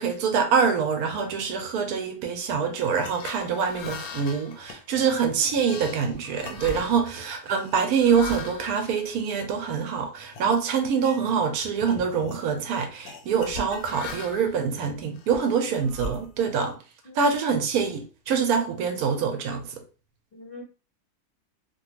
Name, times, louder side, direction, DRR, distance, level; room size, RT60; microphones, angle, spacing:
voice 1, 0.0-16.8 17.2-19.8, right 6 dB, 75° right, 1.0 m, -25 dB
sound 1, 2.8-9.8 10.3-10.5 10.9-11.5 11.8-12.4 13.0-14.6 15.1-16.7, left 3 dB, 70° left, 1.0 m, -40 dB
voice 2, 5.0-5.5 17.0-17.2 20.3-20.6, left 2 dB, 45° left, 0.7 m, -45 dB
3.0 x 2.2 x 2.9 m
omnidirectional pair, 1.7 m